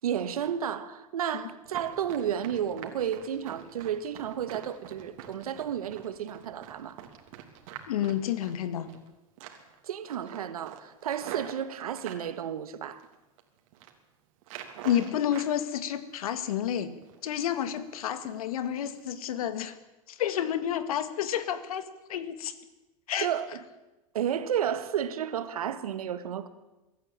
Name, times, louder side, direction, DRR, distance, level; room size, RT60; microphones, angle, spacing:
voice 1, 0.0-7.0 9.8-13.0 23.2-23.5 24.1-26.5, right 9 dB, 85° right, 1.8 m, -32 dB
Run, 1.6-9.1 9.4-9.8 10.1-12.3 12.8-13.4 13.7-13.9 14.4-15.5 15.9-16.7 17.0-17.2 17.6-17.9 18.2-18.4 18.8-19.0 19.4-19.5, right 10 dB, 65° right, 3.2 m, -45 dB
voice 2, 7.9-8.9 14.8-17.0 17.2-19.8 20.1-21.8 22.1-22.5 23.1-23.3, left 10 dB, 80° left, 1.9 m, -30 dB
23.0 x 13.5 x 9.0 m
hypercardioid pair, 110°, 18 cm